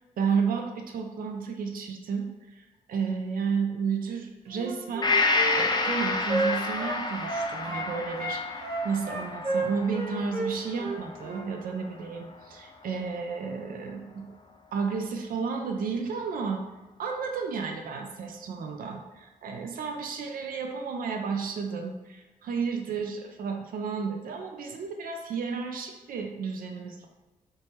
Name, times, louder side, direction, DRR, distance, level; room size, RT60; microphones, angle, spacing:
voice 1, 0.0-14.2 14.7-16.6 17.0-27.1, right 5 dB, 70° right, 3 dB, 0.4 m, -32 dB
Wind instrument woodwind instrument, 4.5-7.9 8.2-11.4, right 2 dB, 40° right, 0.9 m, -31 dB
Gong, 5.0-12.7 13.0-13.1, left 3 dB, 30° left, 0.4 m, -30 dB
3.0 x 2.2 x 2.7 m, 1.1 s
cardioid pair, 55°, 15 cm